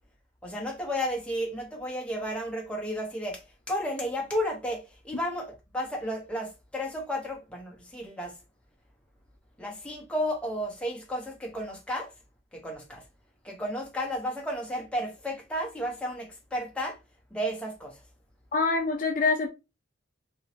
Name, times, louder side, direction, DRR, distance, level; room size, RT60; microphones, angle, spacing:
voice 1, 0.4-3.4 3.7-8.3 9.6-12.1 12.5-13.0 13.4-16.9 17.3-17.9, equal, 5° left, 0.9 m, -33 dB
voice 2, 18.5-19.5, left 4 dB, 40° left, 0.5 m, -25 dB
3.5 x 3.0 x 2.7 m
head